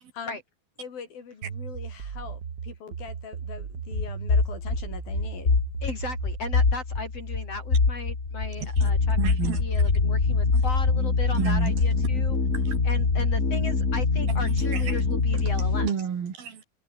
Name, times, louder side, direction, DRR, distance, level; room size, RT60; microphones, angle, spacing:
voice 1, 0.8-5.6, left 6 dB, 75° left, 5.7 m, -42 dB
sound 1, 1.4-6.8, right 7 dB, 45° right, 1.3 m, -37 dB
sound 2, 3.9-15.9, left 4 dB, 25° left, 2.3 m, -24 dB
voice 2, 5.8-9.2 9.6-12.4 12.8-15.9, left 3 dB, 40° left, 9.0 m, -36 dB
voice 3, 9.2-9.7 10.5-10.6 11.3-11.7 12.7-12.8 14.3-15.0 15.8-16.6, right 7 dB, 80° right, 5.1 m, -31 dB
omnidirectional pair, 4.2 m